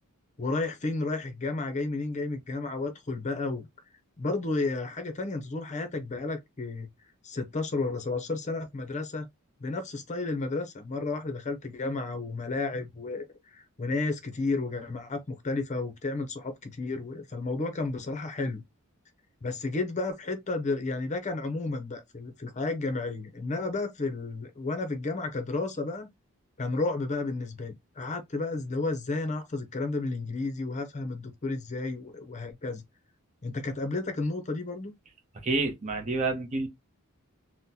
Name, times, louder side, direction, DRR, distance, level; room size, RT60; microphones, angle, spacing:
voice 1, 0.4-3.7 4.2-6.9 7.2-9.3 9.6-13.3 13.5-18.6 19.4-26.1 26.6-32.8 33.4-34.9, left 3 dB, 35° left, 0.6 m, -32 dB
voice 2, 35.4-36.7, right 3 dB, 35° right, 0.8 m, -28 dB
3.8 x 2.1 x 2.8 m
head